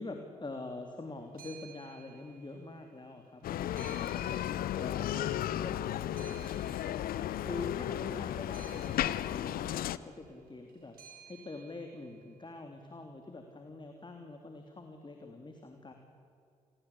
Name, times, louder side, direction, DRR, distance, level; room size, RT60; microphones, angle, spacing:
voice 1, 0.0-7.0 7.4-10.9 11.3-15.9, left 2 dB, 30° left, 4 dB, 3.3 m, -45 dB
sound 1, 1.2-2.9 3.2-5.5 5.9-12.4, right 8 dB, 65° right, 5.4 m, -57 dB
Bicycle, 3.4-10.0, left 12 dB, 65° left, 0.8 m, -34 dB
28.5 x 21.0 x 8.6 m, 2.5 s
hypercardioid pair, 45°, 16 cm